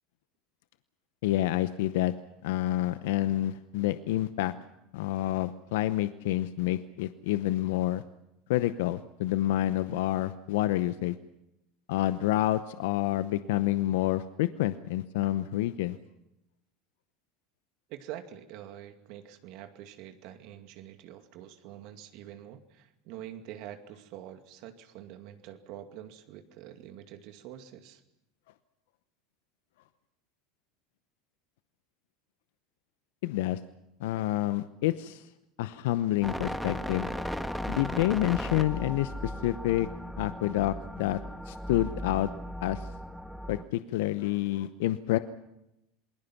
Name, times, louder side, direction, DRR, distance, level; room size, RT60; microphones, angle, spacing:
voice 1, 1.2-2.1 2.4-4.5 4.9-8.0 8.5-11.2 11.9-16.0 33.2-33.6 34.0-35.3 35.6-37.1 37.7-39.9 40.2-41.2 41.5-42.3 42.6-42.9 43.5-45.2, left 15 dB, 75° left, 13 dB, 0.8 m, -28 dB
voice 2, 17.9-28.0, right 11 dB, 60° right, 7 dB, 2.3 m, -46 dB
sound 1, 36.2-43.6, equal, ahead, 1.6 m, -36 dB
27.5 x 20.5 x 5.9 m, 0.88 s
hypercardioid pair, 90°, 0 cm